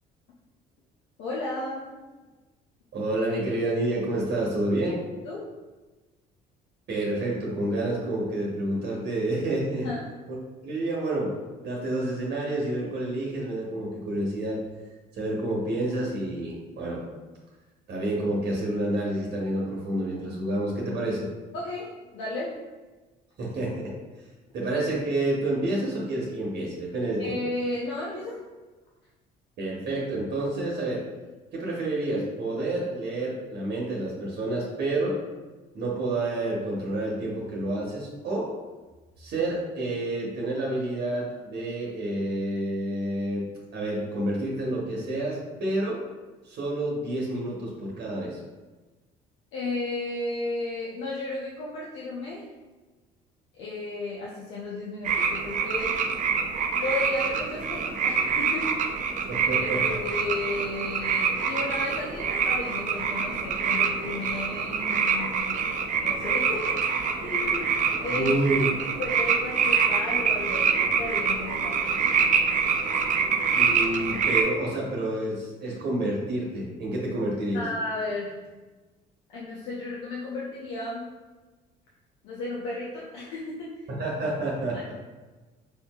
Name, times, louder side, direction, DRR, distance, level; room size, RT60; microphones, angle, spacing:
voice 1, 1.2-2.0 4.9-5.0 5.2-5.4 9.8-10.1 21.5-22.5 27.2-28.4 49.5-52.5 53.5-55.9 56.8-58.7 59.0-59.1 59.6-66.7 67.2-67.7 68.0-68.3 69.0-72.0 77.5-78.4 79.3-81.1 82.2-83.9 84.7-84.8, left 2 dB, 80° left, -5 dB, 0.7 m, -34 dB
voice 2, 2.9-5.0 6.9-9.9 10.3-10.4 10.6-11.3 11.6-14.6 15.2-17.0 17.9-21.3 23.4-23.9 24.5-27.3 29.6-31.0 31.5-35.2 35.7-38.5 39.2-43.4 43.7-46.0 46.4-48.4 59.3-60.0 68.2-68.6 73.6-77.6 84.0-84.9, right 1 dB, 60° right, -3 dB, 1.0 m, -29 dB
sound 1, 55.0-74.4, right 6 dB, 40° right, 0.5 m, -26 dB
5.3 x 2.7 x 2.3 m, 1.2 s
supercardioid pair, 75°, 19 cm